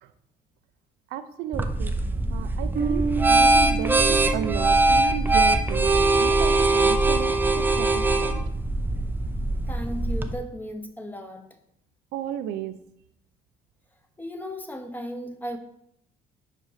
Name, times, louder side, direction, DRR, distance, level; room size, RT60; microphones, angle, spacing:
voice 1, 1.1-1.9 2.3-8.5 12.1-12.8, right 10 dB, 85° right, 10 dB, 0.5 m, -34 dB
sound 1, 1.5-10.3, right 2 dB, 10° right, 0.5 m, -22 dB
Bass guitar, 2.7-6.2, right 5 dB, 55° right, 0.9 m, -31 dB
voice 2, 9.7-11.5 14.2-15.6, equal, 10° left, 5 dB, 0.9 m, -35 dB
5.3 x 4.9 x 5.5 m, 0.76 s
cardioid pair, 110°, 17 cm